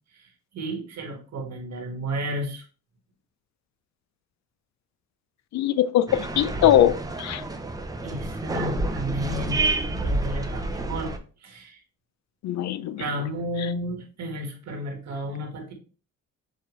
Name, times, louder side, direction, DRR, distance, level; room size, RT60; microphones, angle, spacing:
voice 1, 0.1-2.6 8.0-11.1 11.4-11.8 13.0-15.7, equal, 60° right, 2 dB, 1.5 m, -33 dB
voice 2, 5.5-7.4 8.5-8.6 12.4-13.0 13.6-13.7, left 11 dB, 65° left, 14 dB, 0.5 m, -22 dB
sound 1, 6.1-11.2, right 2 dB, 10° right, 0.6 m, -29 dB
6.6 x 2.5 x 3.0 m, 0.37 s
cardioid pair, 90°, 30 cm